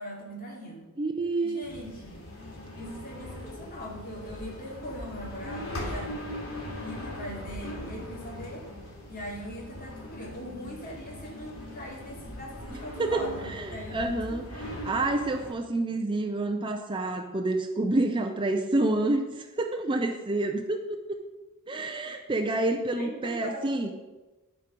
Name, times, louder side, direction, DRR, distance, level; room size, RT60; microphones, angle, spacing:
voice 1, 0.0-0.9 1.4-2.2 2.7-6.1 6.8-8.7 9.1-14.7 22.9-23.9, equal, 40° left, -3 dB, 2.6 m, -41 dB
voice 2, 1.0-1.6 12.7-14.4 14.8-21.2 21.7-23.9, right 2 dB, 25° right, 3 dB, 0.6 m, -28 dB
sound 1, 1.6-15.5, left 1 dB, 70° left, 2.6 m, -40 dB
11.5 x 4.5 x 5.2 m, 1.1 s
head